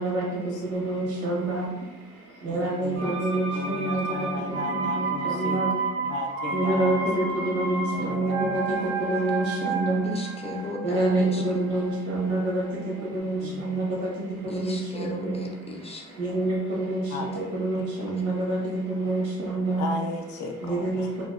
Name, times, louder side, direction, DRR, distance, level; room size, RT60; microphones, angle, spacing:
voice 1, 0.0-6.1 6.5-10.1 10.8-15.4 15.7-19.9 20.6-21.3, right 2 dB, 90° right, -3 dB, 0.9 m, -28 dB
voice 2, 2.5-5.6 6.0-7.0 7.9-8.9 13.4-13.6 17.1-17.5 17.8-17.9 19.8-21.1, left 3 dB, 80° left, 3 dB, 0.5 m, -35 dB
sound 1, 3.0-12.7 13.0-13.1, right 4 dB, 65° right, 0.6 m, -31 dB
voice 3, 10.0-11.6 14.5-16.2, left 2 dB, 20° left, 1 dB, 0.4 m, -36 dB
2.7 x 2.1 x 2.3 m, 0.98 s
cardioid pair, 90°, 30 cm